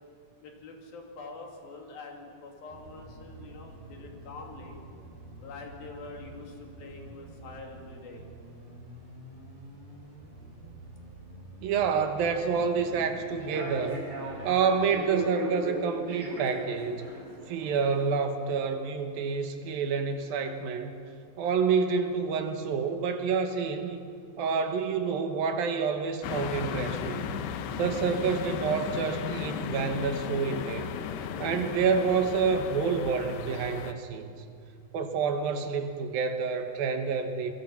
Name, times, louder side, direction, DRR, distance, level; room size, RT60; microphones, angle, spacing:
voice 1, 0.4-4.8 5.4-8.3 30.1-30.5, left 3 dB, 70° left, 2 dB, 4.3 m, -45 dB
sound 1, 2.7-15.2, right 1 dB, 50° right, 8.1 m, -48 dB
voice 2, 11.6-14.0 14.4-17.1 17.5-20.9 21.4-24.0 24.4-27.4 27.7-30.9 31.4-34.3 34.9-37.5, right 5 dB, 75° right, 6 dB, 3.0 m, -28 dB
Human voice / Subway metro underground, 12.6-18.1, right 1 dB, 35° right, 4.9 m, -38 dB
sound 2, 26.2-33.9, left 8 dB, 90° left, 3.0 m, -35 dB
26.0 x 22.0 x 5.9 m, 2.4 s
omnidirectional pair, 4.4 m